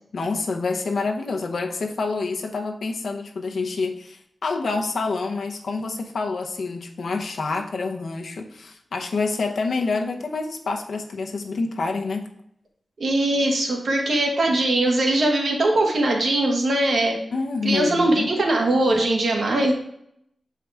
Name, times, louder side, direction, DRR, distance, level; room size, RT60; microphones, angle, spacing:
voice 1, 0.1-12.2 17.3-18.5, left 3 dB, 70° left, 3 dB, 0.8 m, -27 dB
voice 2, 13.0-17.2 17.6-19.7, right 1 dB, 60° right, 1 dB, 1.4 m, -21 dB
7.6 x 4.7 x 3.4 m, 0.73 s
wide cardioid pair, 140°, 0 cm